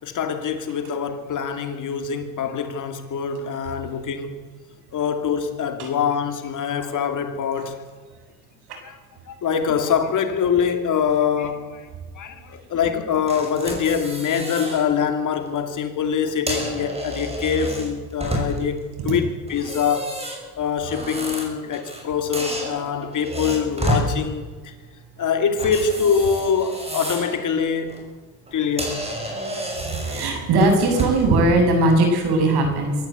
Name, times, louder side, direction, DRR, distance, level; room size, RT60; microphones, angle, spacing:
voice 1, 0.0-4.4 4.9-7.9 8.8-9.0 9.3-11.9 12.2-20.2 20.6-24.7 25.2-28.0 28.5-29.0, left 7 dB, 45° left, 2.8 m, -24 dB
sound 1, 13.3-14.8 15.2-15.5 16.2-18.8 19.5-22.0 22.3-24.1 25.6-27.4 27.8-28.0 28.5-28.6 28.8-31.3, right 1 dB, 15° right, 6.1 m, -30 dB
voice 2, 30.1-33.0, right 2 dB, 65° right, 7.6 m, -18 dB
24.0 x 13.5 x 8.4 m
cardioid pair, 115°, 41 cm